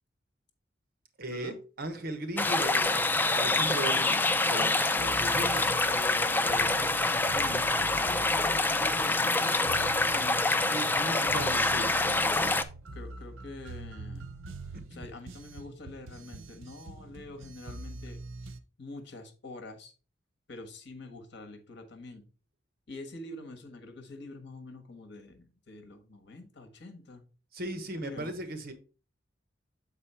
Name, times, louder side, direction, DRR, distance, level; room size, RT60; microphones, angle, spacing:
voice 1, 1.2-3.0 3.3-5.7 10.7-12.6 14.7-15.1 27.5-28.7, right 1 dB, 50° right, 1.1 m, -37 dB
sound 1, 2.4-12.6, left 2 dB, 10° left, 0.4 m, -26 dB
sound 2, 5.0-18.6, right 2 dB, 90° right, 0.7 m, -45 dB
voice 2, 5.8-10.4 12.9-14.3 14.9-18.5 18.8-19.9 20.5-22.2 22.9-27.2 28.0-28.3, left 2 dB, 60° left, 1.4 m, -45 dB
6.8 x 4.3 x 4.3 m
head